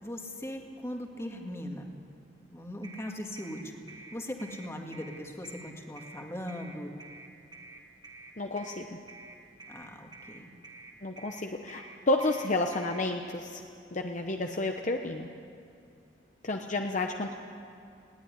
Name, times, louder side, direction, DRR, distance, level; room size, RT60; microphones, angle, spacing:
voice 1, 0.0-1.9 2.5-6.9 9.7-10.5, equal, 15° left, 2 dB, 1.9 m, -39 dB
sound 1, 2.8-13.0, right 3 dB, 25° right, 1.8 m, -49 dB
voice 2, 8.4-8.9 11.0-13.6 13.9-15.3 16.4-17.4, left 2 dB, 40° left, 3 dB, 0.9 m, -31 dB
20.0 x 16.5 x 9.9 m, 2.4 s
head